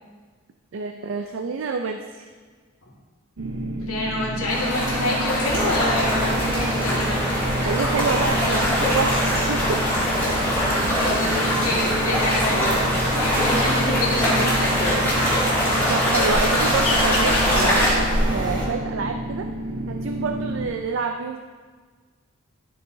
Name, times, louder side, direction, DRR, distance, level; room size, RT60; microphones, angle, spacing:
voice 1, 0.7-2.3 7.6-9.8 15.9-19.5 19.9-21.4, right 4 dB, 65° right, 5 dB, 0.4 m, -28 dB
sound 1, 3.4-20.7, right 1 dB, 80° right, 0.8 m, -30 dB
voice 2, 3.9-7.2 11.0-12.8 13.1-15.0 16.9-17.3, left 1 dB, 85° left, -4 dB, 2.0 m, -27 dB
sound 2, 4.5-17.9, equal, 10° left, 2.3 m, -23 dB
sound 3, 5.5-18.7, right 1 dB, 20° right, 1.3 m, -28 dB
12.0 x 6.1 x 2.7 m, 1.5 s
head